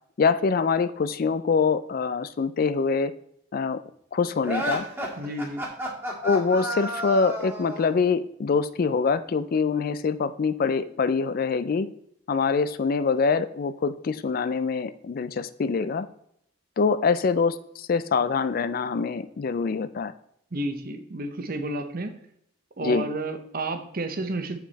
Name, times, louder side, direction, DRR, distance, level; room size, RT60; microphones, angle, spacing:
voice 1, 0.2-3.1 3.5-3.8 4.1-4.8 6.2-11.9 12.3-16.1 16.8-20.1 22.8-23.1, left 5 dB, 45° left, 14 dB, 0.4 m, -24 dB
sound 1, 4.4-8.0, right 1 dB, 10° right, 1.7 m, -31 dB
voice 2, 5.2-5.6 20.5-22.1 22.8-24.6, right 2 dB, 45° right, 7 dB, 0.9 m, -31 dB
7.6 x 5.9 x 4.1 m, 0.72 s
head